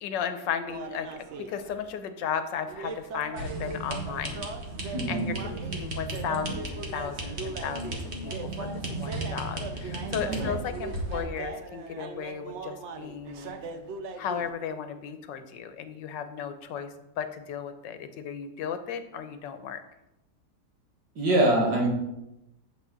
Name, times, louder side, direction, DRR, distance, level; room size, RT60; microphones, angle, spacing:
voice 1, 0.0-4.5 4.8-13.5 14.2-19.8, left 7 dB, 90° left, 9 dB, 1.5 m, -35 dB
sound 1, 0.7-1.8 2.7-14.5, right 4 dB, 55° right, 0.8 m, -40 dB
sound 2, 3.4-11.2, right 2 dB, 40° right, 1.7 m, -35 dB
voice 2, 4.9-5.3 10.3-10.5 21.2-21.9, right 2 dB, 90° right, -1 dB, 2.6 m, -24 dB
8.5 x 7.4 x 4.0 m, 0.90 s
omnidirectional pair, 1.9 m